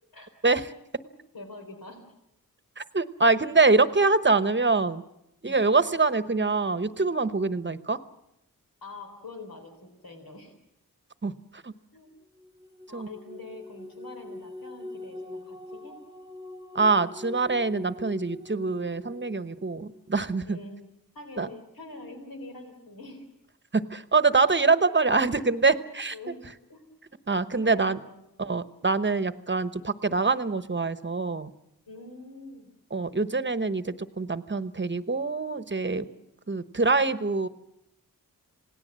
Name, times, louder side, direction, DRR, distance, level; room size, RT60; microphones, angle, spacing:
voice 1, 1.3-2.1 5.4-5.6 8.8-10.5 11.9-12.1 12.9-15.9 20.5-23.2 26.1-26.4 26.7-26.8 27.6-28.2 31.9-32.7 36.0-36.3, left 2 dB, 75° left, 4 dB, 4.1 m, -45 dB
voice 2, 2.8-5.0 5.4-8.0 11.2-11.7 12.9-13.1 16.7-20.6 21.4-21.5 23.7-26.1 27.3-28.0 28.4-31.5 32.9-36.1 36.5-37.5, right 3 dB, 30° right, 13 dB, 1.1 m, -25 dB
sound 1, 12.3-20.2, left 2 dB, 15° right, 1.4 m, -43 dB
27.5 x 18.0 x 7.6 m, 0.84 s
wide cardioid pair, 65°, 35 cm